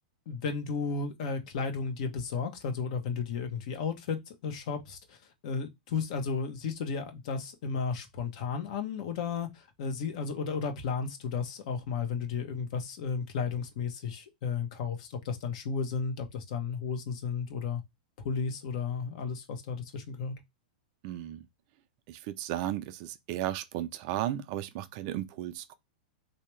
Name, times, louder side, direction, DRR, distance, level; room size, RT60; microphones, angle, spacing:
voice 1, 0.3-5.2 5.4-17.8 18.2-20.4, left 5 dB, 60° left, 1.0 m, -33 dB
voice 2, 21.0-21.5 22.1-25.7, right 13 dB, 50° right, 0.5 m, -35 dB
3.4 x 2.7 x 3.1 m
hypercardioid pair, 130°, 4 cm